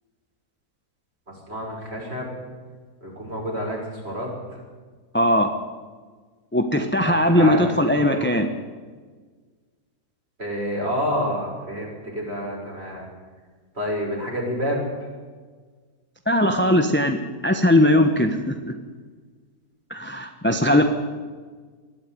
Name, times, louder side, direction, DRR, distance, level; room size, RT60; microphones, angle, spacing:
voice 1, 1.5-2.3 3.0-4.3 7.0-7.7 8.1-8.3 10.4-11.9 12.1-13.1 13.8-14.8, equal, 40° right, -2 dB, 6.8 m, -28 dB
voice 2, 5.1-5.5 6.5-8.5 16.3-17.2 17.4-18.7 19.9-20.8, left 1 dB, 10° left, 5 dB, 1.1 m, -19 dB
20.5 x 13.5 x 9.4 m, 1.5 s
omnidirectional pair, 1.7 m